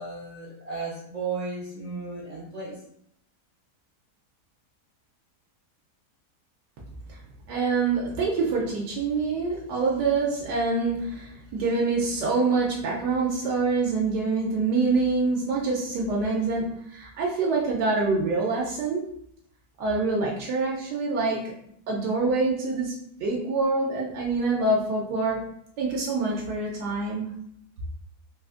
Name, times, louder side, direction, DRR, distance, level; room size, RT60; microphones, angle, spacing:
voice 1, 0.0-2.8, right 4 dB, 50° right, -6 dB, 0.4 m, -34 dB
voice 2, 7.5-19.1 19.8-21.5 21.9-25.5 25.8-27.3, right 3 dB, 85° right, -3 dB, 1.2 m, -26 dB
3.5 x 2.4 x 2.4 m, 0.70 s
omnidirectional pair, 1.8 m